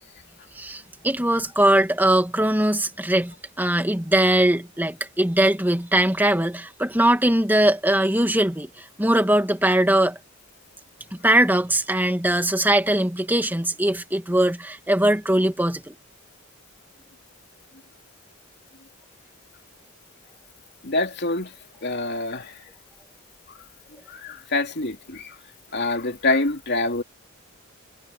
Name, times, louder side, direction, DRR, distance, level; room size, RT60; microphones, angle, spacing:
voice 1, 0.6-8.7 9.0-10.2 11.2-15.9, right 1 dB, 10° right, 2.2 m, -21 dB
voice 2, 20.8-21.5 21.8-22.5 24.1-25.3 25.7-27.0, left 2 dB, 55° left, 3.0 m, -25 dB
head